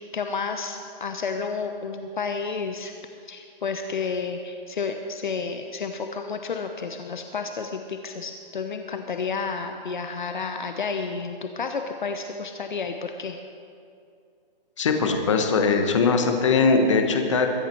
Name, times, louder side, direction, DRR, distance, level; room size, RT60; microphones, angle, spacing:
voice 1, 0.1-2.9 3.2-13.4, left 5 dB, 55° left, 6 dB, 0.9 m, -31 dB
voice 2, 14.8-17.5, left 4 dB, 30° left, 4 dB, 1.2 m, -21 dB
22.5 x 9.0 x 4.5 m, 2.3 s
hypercardioid pair, 180°, 29 cm